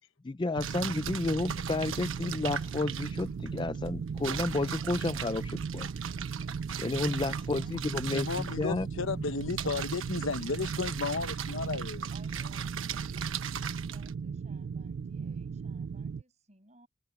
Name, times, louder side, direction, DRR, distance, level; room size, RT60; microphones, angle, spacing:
voice 1, 0.2-5.9 6.8-8.9, left 2 dB, 20° left, 0.3 m, -32 dB
sound 1, 0.6-16.2, right 6 dB, 60° right, 0.3 m, -37 dB
sound 2, 0.6-14.1, right 7 dB, 80° right, 1.2 m, -40 dB
voice 2, 6.7-8.5 12.1-16.9, right 2 dB, 35° right, 7.7 m, -61 dB
voice 3, 8.1-12.1, left 4 dB, 75° left, 1.0 m, -33 dB
head